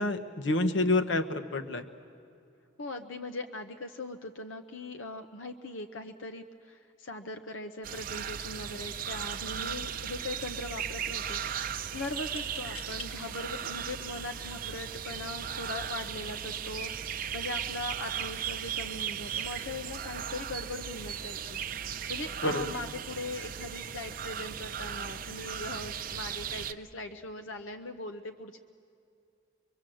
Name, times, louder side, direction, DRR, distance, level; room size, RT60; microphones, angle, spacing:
voice 1, 0.0-1.9 22.4-22.6, left 2 dB, 65° left, 8 dB, 1.1 m, -28 dB
voice 2, 2.8-11.4 11.9-21.6 22.1-28.6, left 2 dB, 85° left, 6 dB, 0.9 m, -40 dB
sound 1, 7.8-26.7, right 8 dB, 45° right, 0.6 m, -37 dB
sound 2, 12.0-13.1 13.8-13.9 14.8-15.1, left 1 dB, 30° left, 1.3 m, -47 dB
24.0 x 24.0 x 7.7 m, 2.5 s
head